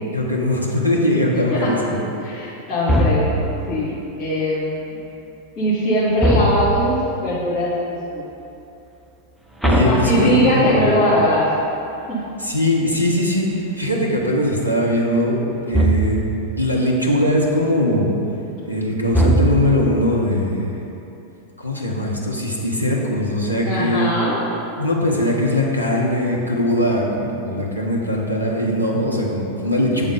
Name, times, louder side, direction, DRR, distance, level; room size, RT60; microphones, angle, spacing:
voice 1, 0.1-1.8 9.6-11.1 12.4-16.2 16.6-18.2 18.6-20.7 21.6-24.1 24.8-30.1, left 1 dB, 90° left, -3 dB, 0.9 m, -20 dB
voice 2, 2.2-5.0 5.6-7.0 7.2-8.2 9.8-11.5 12.1-12.2 23.6-24.4, equal, 30° left, -11 dB, 1.5 m, -21 dB
sound 1, 2.9-3.6 6.2-7.0 9.6-10.8 15.7-16.4 19.1-19.9, equal, 5° right, 0.7 m, -19 dB
8.1 x 3.6 x 5.4 m, 2.9 s
figure-of-eight pair, 90°, 0 cm